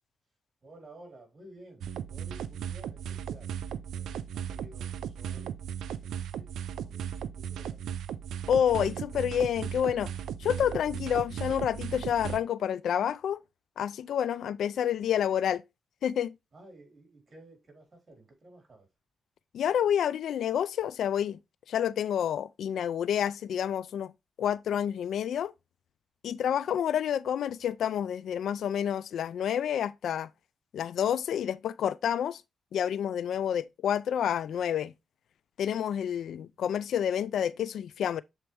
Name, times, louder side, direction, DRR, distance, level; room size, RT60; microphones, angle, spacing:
voice 1, 0.6-3.5 3.9-5.6 6.0-6.5 6.8-7.8 16.5-18.9, right 1 dB, 35° right, 4.0 m, -53 dB
sound 1, 1.8-12.4, right 9 dB, 85° right, 0.4 m, -37 dB
voice 2, 8.5-10.1 10.4-13.4 13.8-15.6 16.0-16.3 19.5-21.4 21.7-24.1 24.4-25.5 26.2-30.3 30.7-32.4 32.7-34.9 35.6-38.2, left 9 dB, 80° left, 0.3 m, -29 dB
7.0 x 4.4 x 3.3 m
cardioid pair, 75°, 0 cm